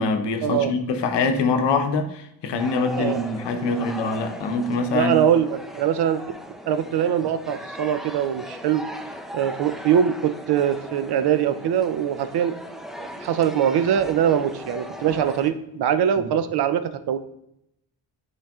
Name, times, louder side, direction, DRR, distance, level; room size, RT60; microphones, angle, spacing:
voice 1, 0.0-5.2, left 3 dB, 70° left, 6 dB, 0.8 m, -24 dB
sound 1, 2.6-15.5, equal, ahead, 0.4 m, -38 dB
voice 2, 4.9-6.3 6.7-8.8 9.3-12.5 13.0-17.2, right 9 dB, 60° right, 11 dB, 0.5 m, -22 dB
8.7 x 4.6 x 2.3 m, 0.80 s
cardioid pair, 80°, 45 cm